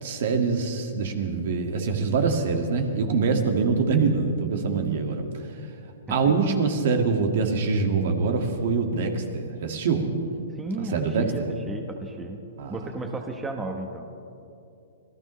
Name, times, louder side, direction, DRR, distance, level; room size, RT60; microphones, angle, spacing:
voice 1, 0.0-5.5 6.1-10.1 10.9-11.5 12.6-12.8, right 4 dB, 60° right, 4 dB, 2.0 m, -24 dB
voice 2, 10.5-12.4 12.7-14.1, right 2 dB, 10° right, 3 dB, 1.2 m, -34 dB
26.0 x 17.0 x 3.2 m, 2.6 s
hypercardioid pair, 145°, 0 cm